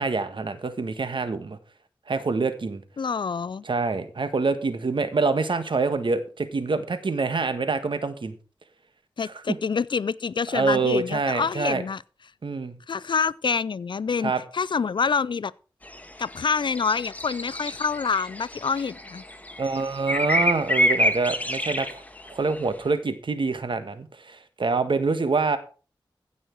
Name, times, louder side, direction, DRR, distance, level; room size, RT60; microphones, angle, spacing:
voice 1, 0.0-1.6 2.1-2.8 3.6-8.4 9.2-9.6 10.5-11.8 12.4-12.8 14.2-14.4 19.6-21.9 22.3-25.6, right 4 dB, 65° right, 1.5 m, -26 dB
voice 2, 3.0-3.6 9.2-12.0 12.9-15.5 16.2-19.2, left 5 dB, 65° left, 0.4 m, -27 dB
sound 1, 15.9-16.4 16.7-22.6, equal, 15° left, 1.5 m, -27 dB
15.5 x 6.2 x 4.6 m
cardioid pair, 45°, 9 cm